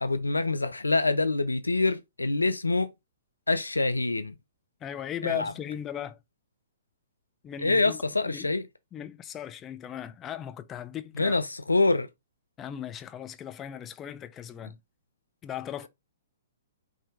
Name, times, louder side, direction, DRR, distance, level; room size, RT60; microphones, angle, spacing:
voice 1, 0.0-2.9 3.5-4.3 5.2-5.5 7.6-8.6 11.2-12.1, left 3 dB, 80° left, 0.3 m, -25 dB
voice 2, 4.8-6.2 7.4-8.5 8.9-11.4 12.6-14.8 15.4-15.9, left 10 dB, 20° left, 0.4 m, -37 dB
4.8 x 2.7 x 2.3 m
figure-of-eight pair, 115°, 0 cm